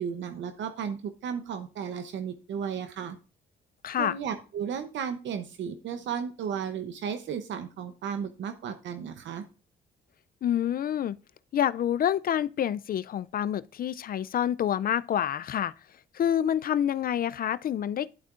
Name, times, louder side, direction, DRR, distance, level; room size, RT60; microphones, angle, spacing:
voice 1, 0.0-3.2 4.0-9.4, right 7 dB, 70° right, 0.8 m, -34 dB
voice 2, 3.8-4.2 10.4-11.2 11.5-15.7 16.1-18.2, left 10 dB, 45° left, 0.4 m, -27 dB
11.0 x 8.0 x 2.5 m
cardioid pair, 90°, 20 cm